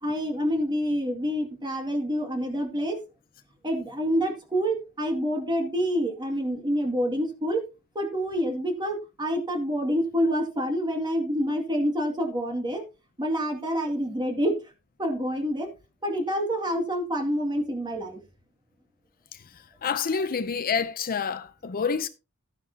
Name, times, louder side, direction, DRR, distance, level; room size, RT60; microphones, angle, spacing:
voice 1, 0.0-3.0 3.6-7.6 7.9-12.8 13.2-14.6 15.0-15.7 16.0-18.2, equal, 20° right, 2.3 m, -27 dB
voice 2, 19.3-22.1, left 6 dB, 40° left, 0.6 m, -28 dB
13.0 x 9.9 x 2.8 m
head